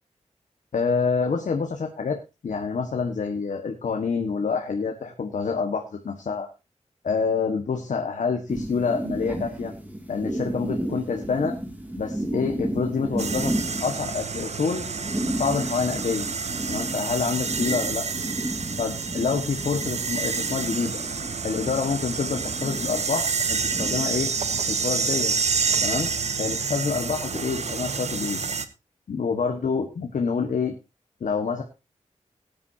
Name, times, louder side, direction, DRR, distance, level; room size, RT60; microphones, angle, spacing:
voice 1, 0.7-2.2 2.4-6.5 7.0-9.7 10.1-11.5 12.0-13.5 13.8-14.9 15.3-16.3 16.7-18.1 18.8-21.0 21.4-24.3 24.7-25.3 25.8-26.1 26.4-28.4 29.1-30.7 31.2-31.6, left 5 dB, 85° left, 3 dB, 1.6 m, -27 dB
sound 1, 8.5-24.6, right 1 dB, 10° right, 2.5 m, -33 dB
sound 2, 13.2-28.6, right 5 dB, 60° right, 1.1 m, -28 dB
19.0 x 9.5 x 2.8 m, 0.27 s
wide cardioid pair, 125°, 13 cm